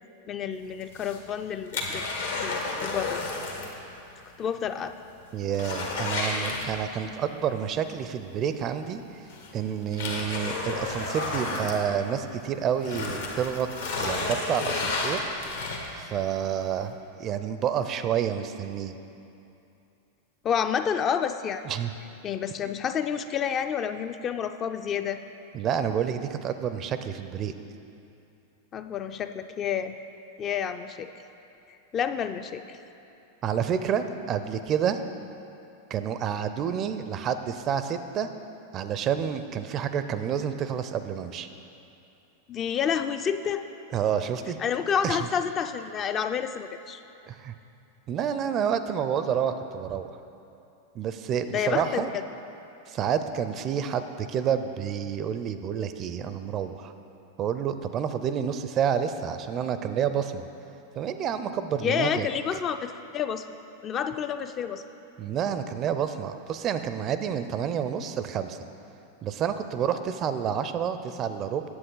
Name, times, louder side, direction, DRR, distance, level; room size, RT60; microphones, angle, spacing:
voice 1, 0.3-2.0 2.4-3.2 4.4-4.9 20.4-21.6 22.2-25.2 28.7-30.0 30.4-31.1 31.9-32.8 42.5-43.6 44.6-47.0 51.5-52.2 61.8-63.5 63.8-64.8, left 8 dB, 30° left, 9 dB, 0.3 m, -29 dB
sound 1, 0.8-3.8 4.1-4.2 4.6-4.7 5.1-7.1 8.5-8.6 9.3-12.4 12.7-16.1 16.6-16.7, left 3 dB, 75° left, 1.1 m, -31 dB
voice 2, 5.3-9.0 9.5-13.7 14.0-15.2 16.0-18.9 21.7-21.9 25.5-27.5 33.4-35.0 35.9-38.3 38.7-41.5 43.9-44.6 45.0-45.2 47.3-47.5 48.1-50.1 50.9-52.1 52.9-56.9 57.4-60.4 61.0-62.3 65.2-68.6 69.2-71.6, right 8 dB, 35° right, 10 dB, 0.4 m, -29 dB
8.8 x 7.5 x 3.9 m, 2.8 s
figure-of-eight pair, 90°, 0 cm